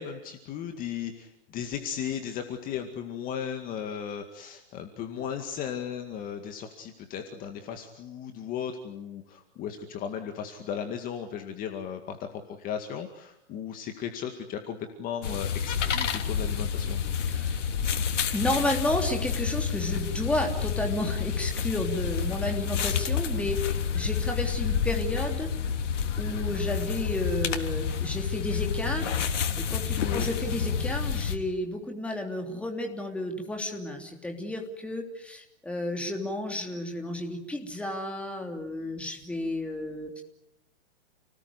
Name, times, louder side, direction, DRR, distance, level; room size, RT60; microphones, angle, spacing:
voice 1, 0.0-12.3 12.6-17.0 30.0-30.3, left 8 dB, 25° left, 5 dB, 2.1 m, -36 dB
sound 1, 15.2-31.4, left 7 dB, 85° left, 3.3 m, -29 dB
voice 2, 17.3-17.6 18.3-25.5 26.2-29.1 29.6-40.2, left 1 dB, 5° left, 3 dB, 3.1 m, -32 dB
30.0 x 19.5 x 9.9 m, 0.83 s
hypercardioid pair, 160°, 36 cm